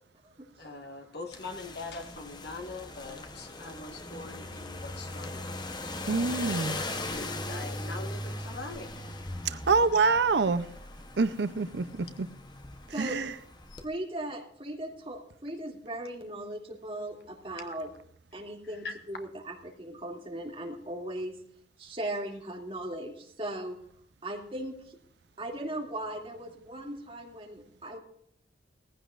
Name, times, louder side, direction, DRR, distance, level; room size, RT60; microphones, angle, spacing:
voice 1, 0.6-5.5 6.5-8.9 18.8-18.9, left 3 dB, 60° left, 1.7 m, -42 dB
sound 1, 1.3-13.9, left 2 dB, 25° left, 0.9 m, -39 dB
voice 2, 6.1-6.8 9.4-10.7 11.2-12.3 12.9-13.4, right 4 dB, 70° right, 0.6 m, -26 dB
voice 3, 13.8-17.9 18.3-21.4 21.8-23.8 24.2-25.0 25.4-28.0, right 1 dB, 30° right, 2.5 m, -38 dB
19.0 x 15.0 x 2.5 m
head